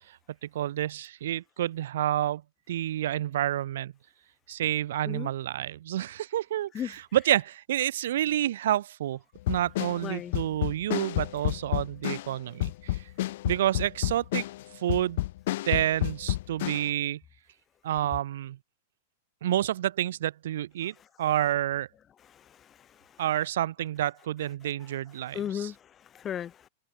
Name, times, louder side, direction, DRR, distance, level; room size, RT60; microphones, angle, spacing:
voice 1, 0.4-2.4 2.7-3.9 4.5-9.2 9.5-13.0 13.4-14.4 14.7-15.2 15.6-17.2 17.8-18.6 19.4-21.9 23.2-25.7, right 12 dB, 75° right, 1.5 m, -29 dB
sound 1, 9.4-16.9, left 16 dB, 65° left, 1.1 m, -30 dB
voice 2, 10.0-10.3 22.3-23.1 25.3-26.7, left 9 dB, 25° left, 0.4 m, -36 dB
supercardioid pair, 140°, 0 cm